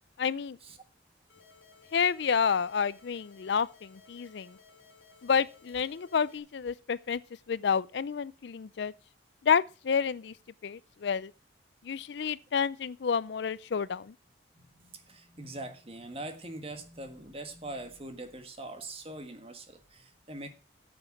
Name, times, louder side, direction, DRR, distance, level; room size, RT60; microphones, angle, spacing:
voice 1, 0.2-0.6 1.9-4.6 5.2-7.2 7.5-8.9 9.4-10.3 10.6-11.3 11.8-14.1, left 6 dB, 60° left, 0.4 m, -29 dB
sound 1, 1.3-6.4, left 5 dB, 85° left, 2.8 m, -58 dB
voice 2, 14.5-20.5, right 2 dB, 30° right, 1.5 m, -43 dB
9.6 x 7.1 x 6.0 m
head